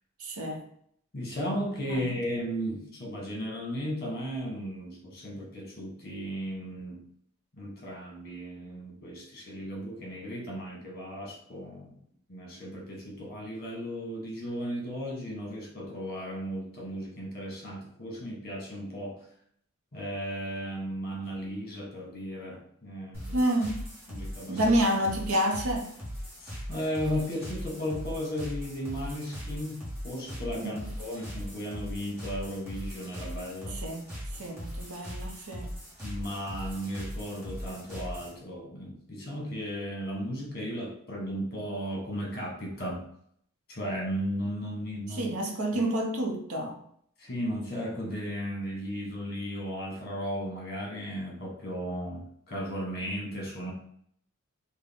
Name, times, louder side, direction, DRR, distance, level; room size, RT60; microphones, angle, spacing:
voice 1, 0.2-0.6 1.9-2.0 23.3-23.8 24.5-25.9 30.5-30.9 33.7-34.1 34.3-35.7 45.2-46.8, right 1 dB, 90° right, 2 dB, 0.8 m, -28 dB
voice 2, 1.1-7.0 7.5-12.0 12.3-19.2 19.9-23.4 24.1-24.8 26.4-33.8 36.0-43.0 43.7-45.3 45.7-45.8 47.2-53.7, equal, 45° left, -2 dB, 1.3 m, -35 dB
sound 1, 23.1-38.4, equal, 10° right, 1.1 m, -39 dB
3.7 x 2.2 x 3.5 m, 0.65 s
head